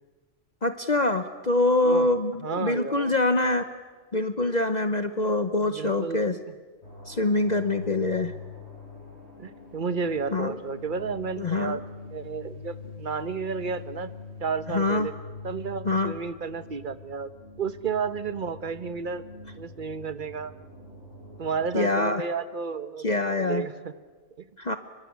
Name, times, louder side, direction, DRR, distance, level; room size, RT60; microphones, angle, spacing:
voice 1, 0.6-3.7 4.1-6.4 7.1-8.3 10.3-10.6 11.4-11.8 14.7-15.1 15.8-16.1 21.7-22.2 23.0-23.6 24.6-24.8, left 2 dB, 40° left, 9 dB, 1.0 m, -25 dB
voice 2, 2.4-3.1 5.6-6.3 9.4-11.8 12.1-14.1 14.4-15.1 15.4-17.3 17.6-19.2 19.6-20.5 21.4-23.1 23.4-23.9 24.4-24.5, right 5 dB, 45° right, 13 dB, 1.1 m, -32 dB
sound 1, 6.8-21.8, left 4 dB, 60° left, 5.8 m, -43 dB
25.5 x 23.5 x 9.5 m, 1.4 s
omnidirectional pair, 1.3 m